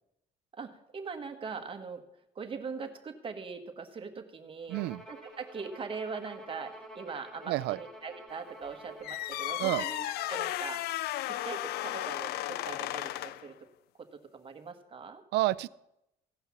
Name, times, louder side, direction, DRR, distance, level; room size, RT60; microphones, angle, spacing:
voice 1, 0.5-2.0 2.3-4.8 5.1-10.8 11.3-13.7 14.0-15.2, right 5 dB, 30° right, 5 dB, 1.4 m, -41 dB
Bowed string instrument, 4.7-10.4, right 1 dB, 5° left, 1.7 m, -49 dB
voice 2, 4.7-5.0 7.5-7.8 9.6-9.8 15.3-15.7, right 17 dB, 80° right, 18 dB, 0.4 m, -29 dB
sound 1, 9.0-13.5, left 15 dB, 70° left, 0.4 m, -34 dB
16.0 x 5.6 x 7.1 m, 0.85 s
cardioid pair, 110°, 17 cm